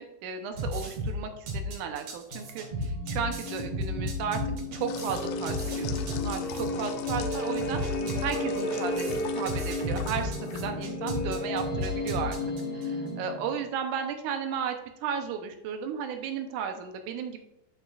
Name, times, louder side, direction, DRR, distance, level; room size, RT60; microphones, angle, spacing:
voice 1, 0.0-7.8 8.2-10.3 10.6-12.4 12.7-14.8 15.0-17.4, right 7 dB, 75° right, 6 dB, 2.0 m, -34 dB
sound 1, 0.5-12.8, equal, 50° right, 2.4 m, -34 dB
sound 2, 2.3-13.7, left 2 dB, 70° left, 0.9 m, -33 dB
sound 3, 4.9-11.1, left 11 dB, 90° left, 2.5 m, -44 dB
11.5 x 5.9 x 2.5 m, 0.84 s
omnidirectional pair, 4.4 m